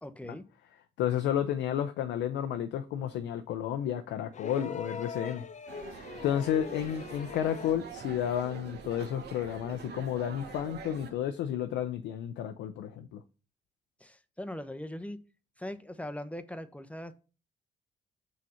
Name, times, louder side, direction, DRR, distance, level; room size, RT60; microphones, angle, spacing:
voice 1, 0.0-0.4 14.0-15.2 15.6-17.1, left 1 dB, 5° left, 0.8 m, -40 dB
voice 2, 1.0-5.5 6.2-13.2, left 10 dB, 85° left, 0.6 m, -31 dB
sound 1, 4.3-7.9 9.2-9.3, left 5 dB, 40° left, 0.7 m, -41 dB
sound 2, 5.7-11.1, right 6 dB, 70° right, 1.3 m, -45 dB
6.3 x 4.1 x 5.6 m
supercardioid pair, 60°, 18 cm